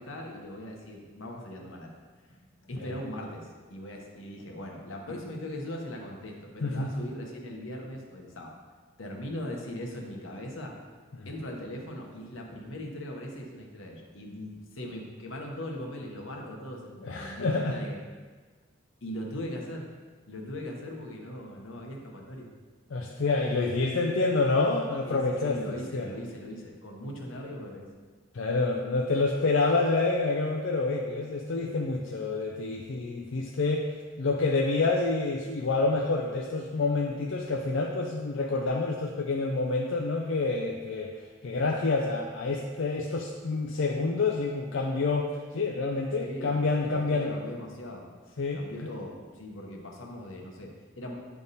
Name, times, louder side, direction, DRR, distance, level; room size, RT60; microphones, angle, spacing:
voice 1, 0.0-2.0 2.3-8.5 9.0-10.8 11.2-18.0 19.0-19.9 20.3-22.5 25.0-27.9 46.2-48.1 48.5-51.1, left 1 dB, 90° left, 0 dB, 1.1 m, -40 dB
voice 2, 6.6-6.9 11.1-11.3 17.0-17.8 22.9-26.1 28.3-33.9 34.2-41.2 41.4-47.3 48.4-48.9, left 3 dB, 70° left, 1 dB, 0.5 m, -28 dB
9.4 x 3.6 x 4.1 m, 1.4 s
head